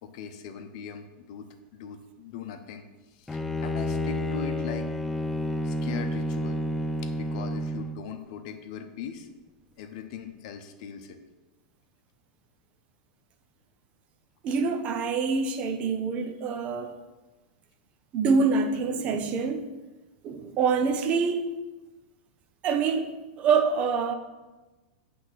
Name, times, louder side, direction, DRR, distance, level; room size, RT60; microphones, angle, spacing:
voice 1, 0.0-1.5 1.7-4.9 5.6-6.6 7.0-9.3 9.8-11.2, left 7 dB, 55° left, 0.8 m, -40 dB
Bowed string instrument, 3.3-8.0, left 1 dB, 5° left, 0.3 m, -30 dB
voice 2, 14.4-16.9 18.1-19.7 20.2-21.4 22.6-24.1, right 5 dB, 30° right, 0.6 m, -26 dB
8.0 x 3.5 x 5.8 m
supercardioid pair, 155°, 4 cm